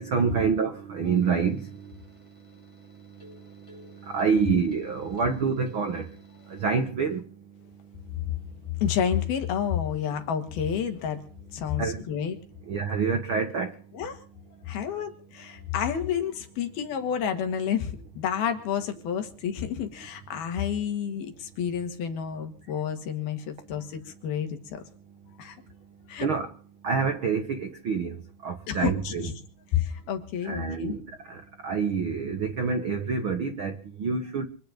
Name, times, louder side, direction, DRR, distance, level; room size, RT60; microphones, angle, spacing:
voice 1, 0.0-1.6 4.1-6.1 6.5-7.2 11.8-12.0 12.7-13.7 26.2-26.5 26.8-28.2 28.4-29.3 30.4-31.0 31.3-31.4 31.6-34.5, right 5 dB, 85° right, 1.1 m, -27 dB
sound 1, 1.0-6.7, left 2 dB, 5° left, 6.7 m, -55 dB
voice 2, 8.8-11.2 11.5-12.4 13.9-14.2 14.7-24.8 25.4-25.6 26.1-26.3 28.7-29.3 29.7-31.0, left 8 dB, 65° left, 3.7 m, -30 dB
25.5 x 10.5 x 5.2 m
omnidirectional pair, 4.8 m